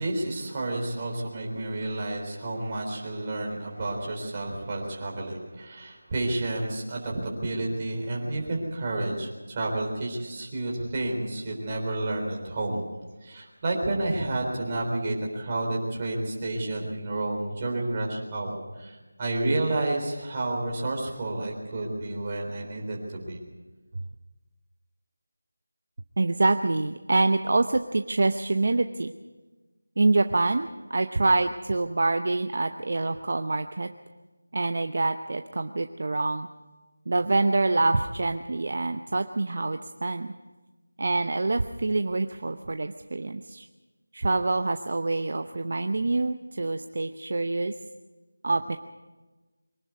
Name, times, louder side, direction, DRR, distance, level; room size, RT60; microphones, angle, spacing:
voice 1, 0.0-12.8 13.2-23.4, right 2 dB, 20° right, -1 dB, 3.8 m, -30 dB
voice 2, 26.2-29.1 30.0-33.9 34.5-36.5 37.1-40.3 41.0-43.7 44.1-47.7 48.4-48.8, right 2 dB, 45° right, 8 dB, 0.8 m, -26 dB
24.0 x 11.5 x 9.5 m, 1.2 s
figure-of-eight pair, 175°, 0 cm